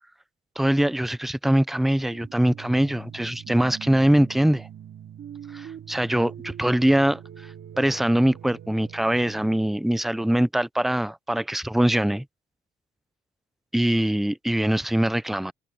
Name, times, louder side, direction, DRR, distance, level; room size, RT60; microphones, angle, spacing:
voice 1, 0.6-4.7 5.5-7.5 7.8-12.2 13.7-15.5, right 1 dB, ahead, 0.4 m, -22 dB
sound 1, 2.1-9.7, right 9 dB, 65° right, 2.5 m, -42 dB
cardioid pair, 90°, 20 cm